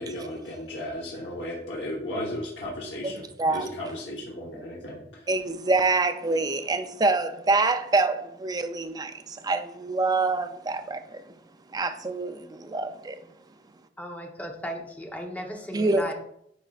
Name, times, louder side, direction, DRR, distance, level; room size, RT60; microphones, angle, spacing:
voice 1, 0.0-3.2 3.5-5.3, left 1 dB, 75° left, 1.1 m, -35 dB
voice 2, 3.0-3.7 5.3-11.2 11.7-13.2 15.7-16.1, right 3 dB, 20° right, 0.4 m, -26 dB
voice 3, 14.0-16.1, equal, 10° left, 0.9 m, -36 dB
9.2 x 4.3 x 2.4 m
head